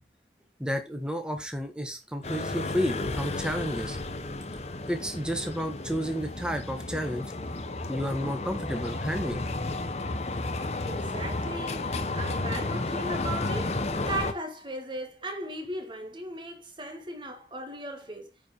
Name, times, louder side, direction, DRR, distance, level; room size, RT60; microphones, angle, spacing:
voice 1, 0.6-4.0 4.9-7.3 7.9-9.4, equal, 5° right, 1.3 m, -31 dB
sound 1, 2.2-14.3, left 2 dB, 35° left, 0.8 m, -32 dB
voice 2, 10.8-18.3, right 1 dB, 25° right, 1.9 m, -37 dB
9.1 x 5.0 x 4.4 m
head